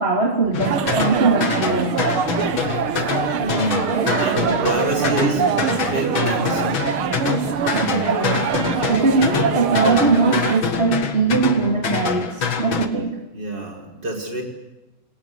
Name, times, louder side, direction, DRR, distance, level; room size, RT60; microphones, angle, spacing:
voice 1, 0.0-2.0 3.9-4.2 7.7-13.2, right 3 dB, 30° right, 2.7 m, -21 dB
sound 1, 0.5-12.9, left 6 dB, 65° left, 2.6 m, -26 dB
sound 2, 0.6-10.6, right 7 dB, 80° right, 2.2 m, -23 dB
voice 2, 3.4-6.9 13.3-14.4, right 1 dB, 50° right, 5.9 m, -28 dB
27.5 x 22.0 x 8.2 m
omnidirectional pair, 2.3 m